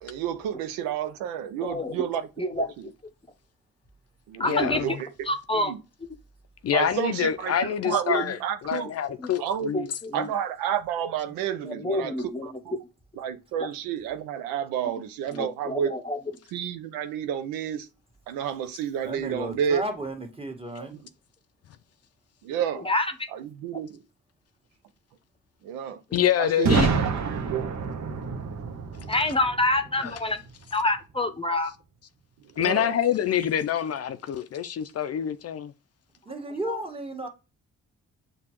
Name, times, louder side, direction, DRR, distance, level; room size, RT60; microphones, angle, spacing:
voice 1, 0.0-2.3 2.6-2.7 4.3-5.1 5.5-5.8 6.7-7.5 7.9-8.9 9.4-9.7 10.1-12.2 12.4-12.8 13.2-15.9 16.5-17.9 18.3-19.8 20.8-21.0 22.4-22.9 23.3-24.0 25.6-26.0 26.4-27.7 32.6-33.0, right 9 dB, 85° right, 0.6 m, -30 dB
voice 2, 1.6-2.0 2.4-2.7 4.4-4.9 5.3-5.7 7.9-8.0 9.2-9.3 9.7-10.3 11.6-12.5 15.3-16.2 22.8-23.0 29.1-30.4 30.7-31.7 36.7-36.8, left 2 dB, 15° left, 0.8 m, -27 dB
voice 3, 4.4-4.9 6.6-8.4 8.6-9.9 26.1-26.9 30.0-30.1 32.6-35.7, left 9 dB, 50° left, 0.5 m, -26 dB
voice 4, 19.0-21.0 36.2-37.3, right 1 dB, 15° right, 1.5 m, -34 dB
Boom, 26.6-30.5, right 5 dB, 55° right, 0.9 m, -27 dB
6.6 x 2.4 x 2.9 m
hypercardioid pair, 45°, 33 cm